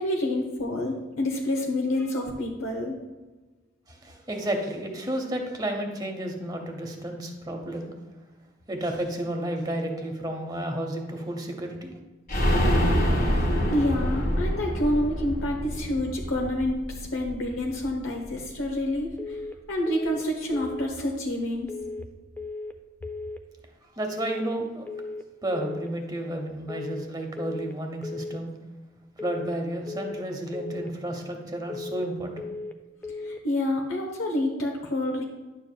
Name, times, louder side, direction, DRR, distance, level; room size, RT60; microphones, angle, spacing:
voice 1, 0.0-3.0 13.7-19.4 19.7-21.7 33.2-35.2, left 1 dB, 90° left, 1 dB, 1.0 m, -28 dB
voice 2, 3.9-7.9 8.7-12.0 24.0-24.9 25.4-28.5 29.2-32.5, right 1 dB, 20° right, 3 dB, 0.9 m, -32 dB
sound 1, 12.3-17.9 18.2-18.3 18.6-18.7, equal, 50° left, 1.6 m, -26 dB
sound 2, 19.2-19.6 19.9-20.3 20.5-20.9 21.7-22.1 22.4-22.8 23.0-23.4 24.2-24.6 24.9-25.3 25.5-25.9 26.7-27.1 27.4-27.8 28.0-28.4 29.2-29.6 29.9-30.3 30.5-30.9 31.7-32.1 32.4-32.8 33.0-33.4, left 3 dB, 10° left, 0.4 m, -36 dB
10.5 x 7.0 x 2.3 m, 1.2 s
head